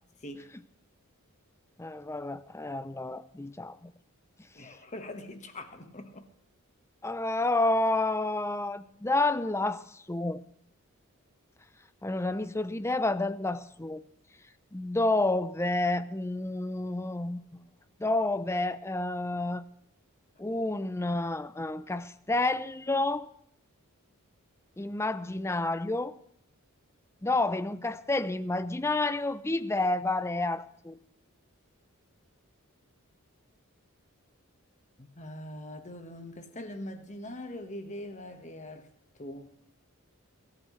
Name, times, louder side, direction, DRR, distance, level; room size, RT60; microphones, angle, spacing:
voice 1, 1.8-3.9 7.0-10.4 12.0-14.0 14.7-17.4 18.0-19.6 20.4-23.3 24.8-26.1 27.2-31.0, left 2 dB, 10° left, 0.5 m, -29 dB
voice 2, 4.5-6.3 35.0-38.9 39.2-39.5, left 1 dB, 30° left, 1.5 m, -42 dB
23.5 x 13.5 x 3.3 m
head